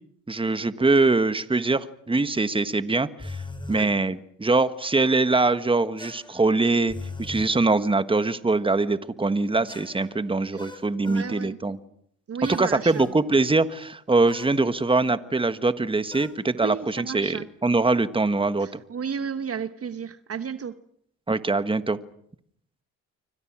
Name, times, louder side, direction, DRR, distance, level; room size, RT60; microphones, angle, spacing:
voice 1, 0.3-3.4 3.7-11.8 12.5-18.8 21.3-22.0, right 3 dB, 15° right, 12 dB, 1.5 m, -23 dB
sound 1, 3.2-3.8 6.0-7.5 9.7-11.3 12.4-13.2 14.3-14.6 16.1-16.4, left 3 dB, 15° left, 6.6 m, -40 dB
voice 2, 11.1-11.6 12.3-13.1 16.5-17.5 18.6-20.8, right 7 dB, 45° right, 12 dB, 1.2 m, -33 dB
28.0 x 24.5 x 6.2 m, 0.69 s
supercardioid pair, 70°, 32 cm